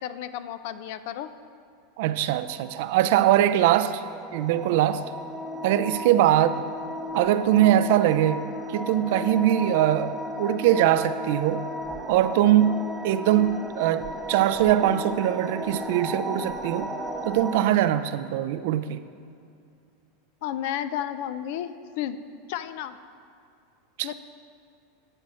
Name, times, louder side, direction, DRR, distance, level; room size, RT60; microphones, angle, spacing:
voice 1, 0.0-1.3 6.3-6.6 20.4-22.2 22.5-23.0 24.0-24.1, left 11 dB, 65° left, 13 dB, 0.4 m, -32 dB
voice 2, 2.0-4.0 4.3-5.1 5.6-6.6 7.1-11.7 12.1-16.9 17.3-19.0 24.0-24.1, right 12 dB, 65° right, 13 dB, 0.4 m, -22 dB
sound 1, 2.3-17.7, equal, 15° right, 0.6 m, -35 dB
9.8 x 4.3 x 7.6 m, 2.4 s
hypercardioid pair, 100°, 0 cm